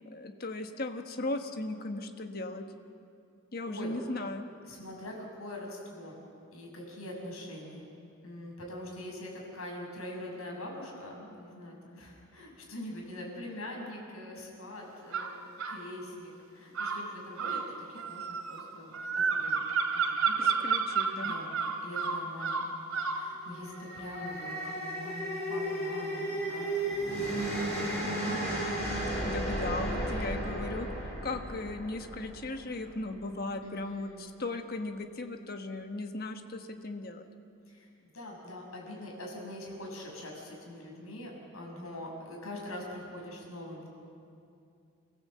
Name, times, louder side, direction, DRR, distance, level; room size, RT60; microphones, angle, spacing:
voice 1, 0.1-2.6 3.5-4.4 20.4-21.3 28.2-28.5 29.2-37.3, left 2 dB, 45° left, 6 dB, 1.4 m, -37 dB
voice 2, 3.6-4.0 4.6-6.2 6.5-8.0 8.2-17.6 17.9-19.6 19.9-20.5 21.2-21.6 21.8-22.7 23.1-26.7 27.1-28.6 33.6-34.3 37.7-37.9 38.1-43.9, left 1 dB, 85° left, -1 dB, 6.2 m, -43 dB
sound 1, 15.1-15.8 16.7-23.3, right 5 dB, 85° right, 2.5 m, -31 dB
sound 2, 23.5-32.8, right 1 dB, 10° left, 7.2 m, -34 dB
28.5 x 15.0 x 7.6 m, 2.5 s
head